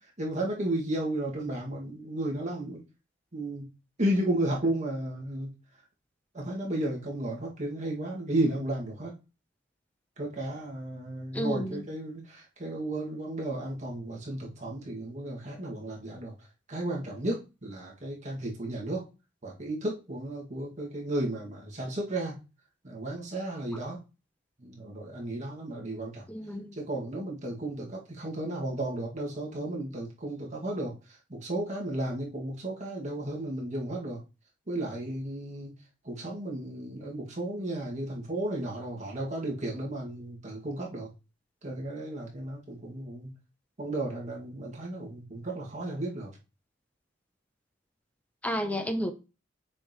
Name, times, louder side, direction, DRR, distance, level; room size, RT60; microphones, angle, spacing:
voice 1, 0.2-2.8 3.3-3.6 4.0-5.5 6.3-9.1 10.2-16.3 16.7-19.0 19.4-22.3 22.8-24.0 24.6-26.2 26.8-30.9 31.3-34.2 34.7-35.7 36.1-41.1 41.6-43.3 43.8-46.3, right 1 dB, 40° right, 2.1 m, -33 dB
voice 2, 11.3-11.8 26.3-26.8 48.4-49.1, equal, 10° left, 0.7 m, -31 dB
7.0 x 5.3 x 3.1 m
head